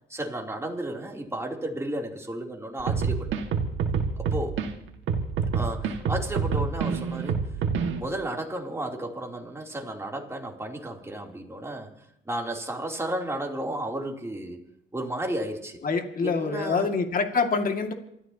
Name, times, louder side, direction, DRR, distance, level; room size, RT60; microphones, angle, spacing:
voice 1, 0.1-3.3 4.2-4.6 5.5-7.5 8.0-11.9 12.2-14.6 14.9-15.8 16.2-16.9, right 1 dB, 15° right, 0 dB, 3.2 m, -33 dB
sound 1, 2.8-4.7 5.1-8.0, right 5 dB, 75° right, 1.9 m, -27 dB
voice 2, 15.8-17.9, left 4 dB, 45° left, 4 dB, 2.2 m, -26 dB
28.0 x 14.0 x 2.9 m, 0.77 s
cardioid pair, 90°, 20 cm